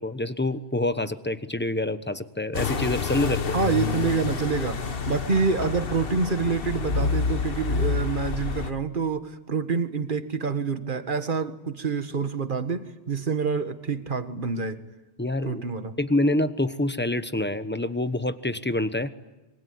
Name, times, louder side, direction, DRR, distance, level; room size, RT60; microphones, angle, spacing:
voice 1, 0.0-3.5 15.2-15.6 16.0-19.1, left 1 dB, 10° left, 11 dB, 1.0 m, -26 dB
sound 1, 2.5-8.7, left 5 dB, 65° left, 1.4 m, -28 dB
voice 2, 3.5-4.8 5.1-14.8 15.4-15.9, right 5 dB, 55° right, 9 dB, 1.7 m, -27 dB
25.5 x 23.5 x 9.5 m, 1.1 s
omnidirectional pair, 1.1 m